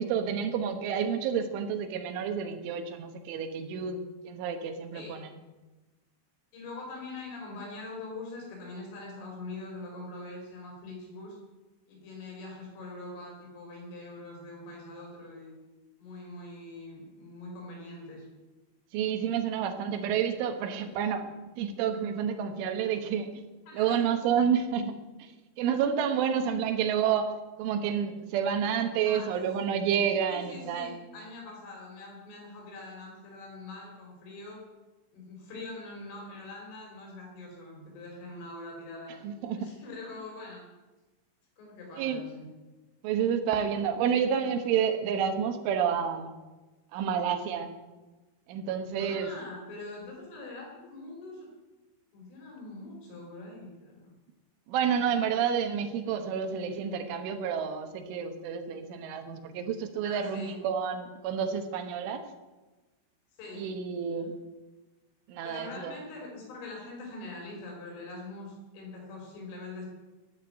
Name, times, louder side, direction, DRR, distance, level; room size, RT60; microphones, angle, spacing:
voice 1, 0.0-5.3 18.9-21.3 21.6-23.3 23.7-25.3 25.6-27.3 27.6-30.9 39.2-39.7 42.0-42.2 43.0-46.4 46.9-47.8 48.5-49.3 54.7-62.3 63.5-64.3 65.3-65.9, right 7 dB, 85° right, 7 dB, 3.7 m, -29 dB
voice 2, 6.5-11.4 11.9-15.5 16.0-18.3 23.7-24.1 29.1-29.3 30.3-34.6 35.1-39.1 39.5-40.7 41.6-42.5 49.0-51.5 52.1-54.1 60.0-60.6 63.4-63.7 65.4-69.9, left 2 dB, 85° left, -1 dB, 7.0 m, -43 dB
13.0 x 9.6 x 9.1 m, 1.2 s
omnidirectional pair, 5.5 m